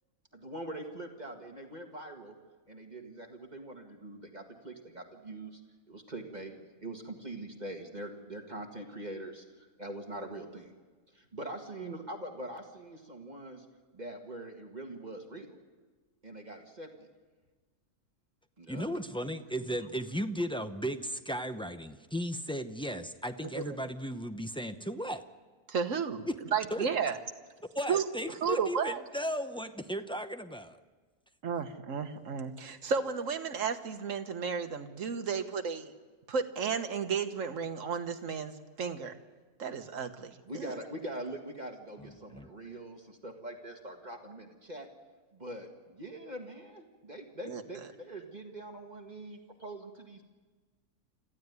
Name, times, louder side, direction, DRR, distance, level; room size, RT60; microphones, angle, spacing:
voice 1, 0.3-2.4 2.7-5.6 5.9-10.7 11.1-13.7 13.9-15.5 16.2-17.1 18.6-18.8 40.5-44.9 45.3-50.2, right 1 dB, 30° right, 3 dB, 1.9 m, -43 dB
voice 2, 18.7-25.2 26.3-26.4 26.7-26.9 27.7-30.8 42.0-42.5, equal, 10° left, 7 dB, 0.3 m, -36 dB
voice 3, 25.7-27.2 27.9-28.0 28.4-29.0 31.4-35.9 36.3-39.2 39.6-40.7 47.5-47.6, right 6 dB, 60° right, 7 dB, 1.6 m, -33 dB
25.5 x 15.0 x 9.6 m, 1.4 s
omnidirectional pair, 1.6 m